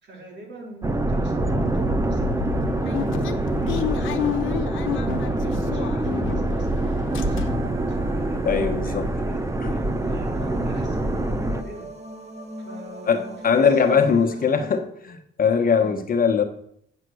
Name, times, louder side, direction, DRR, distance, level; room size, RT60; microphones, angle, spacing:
voice 1, 0.0-4.3 4.8-11.9 12.6-14.8 15.8-16.0, right 1 dB, 60° right, 0 dB, 3.4 m, -42 dB
sound 1, 0.8-11.6, right 2 dB, 15° right, 0.8 m, -25 dB
sound 2, 2.2-6.7 7.0-7.8 8.2-8.3 8.5-8.7, left 10 dB, 85° left, 0.9 m, -30 dB
sound 3, 7.1-14.8, right 1 dB, 35° right, 2.1 m, -41 dB
voice 2, 8.4-9.1 9.6-9.7 13.1-16.4, left 6 dB, 45° left, 6 dB, 1.2 m, -21 dB
8.0 x 7.5 x 6.3 m, 0.70 s
cardioid pair, 90°, 20 cm